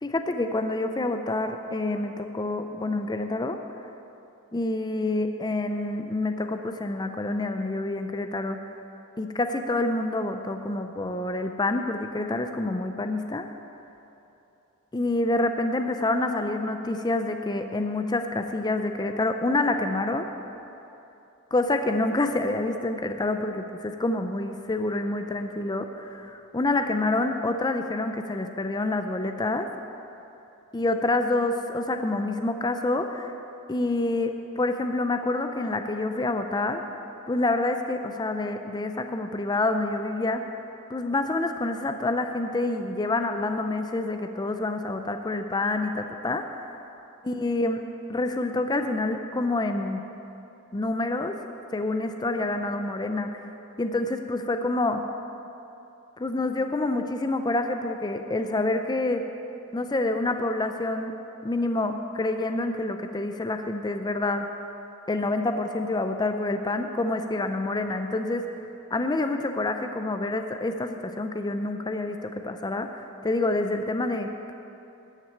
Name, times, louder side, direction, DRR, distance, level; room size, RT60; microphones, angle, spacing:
voice 1, 0.0-3.6 4.5-8.6 9.2-13.5 14.9-20.3 21.5-29.7 30.7-33.3 33.7-36.8 37.3-40.4 40.9-46.7 47.3-47.8 48.1-50.0 50.7-51.3 51.7-53.3 53.8-55.0 56.2-59.2 59.7-61.1 61.4-64.5 65.1-68.6 68.9-74.5, left 2 dB, 20° left, 6 dB, 0.4 m, -27 dB
13.5 x 6.2 x 9.3 m, 2.9 s
head